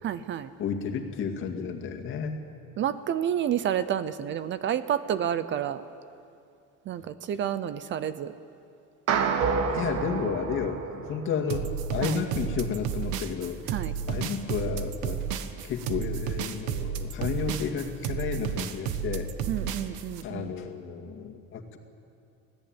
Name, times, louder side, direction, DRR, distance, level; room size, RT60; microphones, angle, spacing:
voice 1, 0.0-0.5 2.8-5.8 6.9-8.3 12.0-12.1 13.7-13.9 19.5-20.5, right 10 dB, 40° right, 13 dB, 0.7 m, -29 dB
voice 2, 0.6-2.4 9.7-13.6 14.1-15.2 15.6-19.3 20.2-21.8, left 6 dB, 45° left, 3 dB, 2.2 m, -32 dB
sound 1, 9.1-11.6, right 6 dB, 55° right, 1.9 m, -28 dB
sound 2, 11.5-20.2, right 8 dB, 85° right, 1.4 m, -32 dB
25.0 x 17.5 x 9.0 m, 2.5 s
cardioid pair, 165°, 29 cm